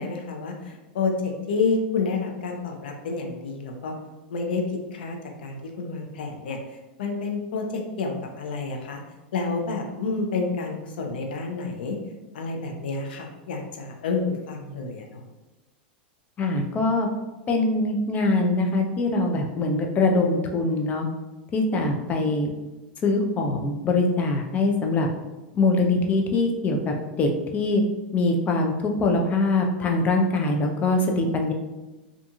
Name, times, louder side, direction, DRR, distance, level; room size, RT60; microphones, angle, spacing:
voice 1, 0.0-3.9 4.3-4.6 4.9-5.2 5.4-6.6 7.0-9.0 9.3-12.0 12.3-15.2, left 4 dB, 80° left, 2 dB, 0.5 m, -29 dB
voice 2, 16.4-17.1 17.5-21.1 21.5-22.5 23.0-25.1 25.5-27.8 28.1-31.5, left 2 dB, 30° left, 3 dB, 0.5 m, -23 dB
2.7 x 2.5 x 2.4 m, 1.1 s
hypercardioid pair, 115°, 5 cm